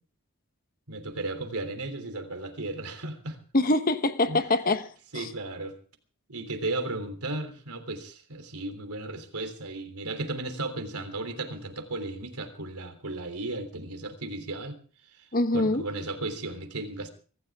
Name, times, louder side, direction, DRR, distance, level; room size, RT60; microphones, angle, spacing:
voice 1, 0.9-3.4 4.3-4.4 5.1-5.7 6.3-14.7 15.2-17.1, right 2 dB, 90° right, 3.3 m, -35 dB
voice 2, 3.5-4.9 5.1-5.3 15.3-15.8, left 2 dB, 40° left, 1.2 m, -24 dB
24.5 x 14.0 x 3.6 m
head